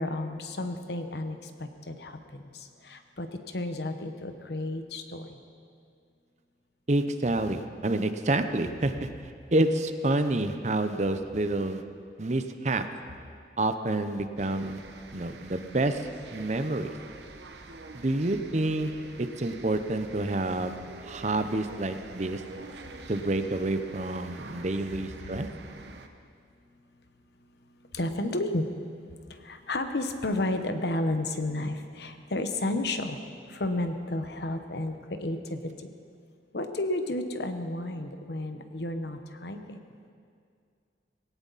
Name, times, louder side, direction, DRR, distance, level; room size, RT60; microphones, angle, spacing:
voice 1, 0.0-5.4 27.9-28.7 29.3-33.2 33.5-35.6 36.5-39.8, left 2 dB, 70° left, 7 dB, 1.1 m, -32 dB
voice 2, 6.9-9.1 9.5-11.8 12.2-12.8 13.6-14.8 15.1-17.0 17.9-18.9 19.2-20.8 21.0-22.4 23.1-25.5, right 2 dB, 40° right, 9 dB, 0.7 m, -28 dB
sound 1, 14.4-26.1, right 3 dB, 75° right, 1.0 m, -46 dB
19.0 x 17.5 x 4.1 m, 2.3 s
head